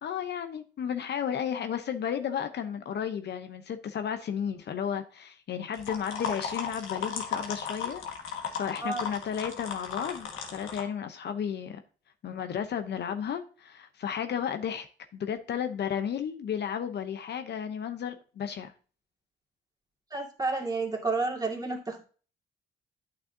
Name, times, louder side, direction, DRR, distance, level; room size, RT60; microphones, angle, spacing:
voice 1, 0.0-11.8 12.2-14.9 15.1-18.7, left 8 dB, 60° left, 0.8 m, -33 dB
sound 1, 5.7-10.8, left 6 dB, 80° left, 1.7 m, -35 dB
voice 2, 20.1-22.0, right 3 dB, 20° right, 2.2 m, -30 dB
8.8 x 6.2 x 2.7 m
cardioid pair, 90°, 20 cm